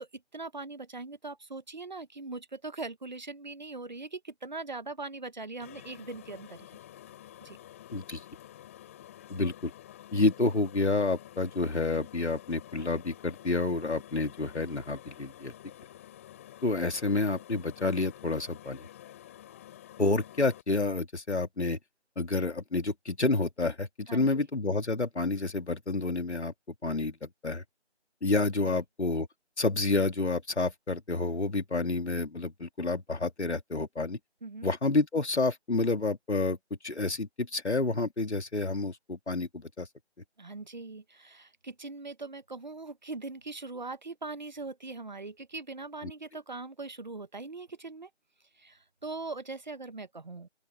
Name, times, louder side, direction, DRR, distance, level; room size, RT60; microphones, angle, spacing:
voice 1, 0.0-6.8 7.4-7.6 24.1-24.4 28.6-28.8 34.4-34.7 40.4-48.1 48.6-50.5, right 3 dB, 40° right, 1.3 m, -41 dB
sound 1, 5.6-20.6, left 12 dB, 15° left, 5.9 m, -50 dB
voice 2, 9.3-9.7 10.1-15.5 16.6-18.8 20.0-21.8 22.2-26.5 26.8-27.6 28.2-29.3 29.6-34.2 34.6-36.6 36.8-39.9, left 3 dB, 80° left, 3.0 m, -29 dB
open air
figure-of-eight pair, 170°, 33 cm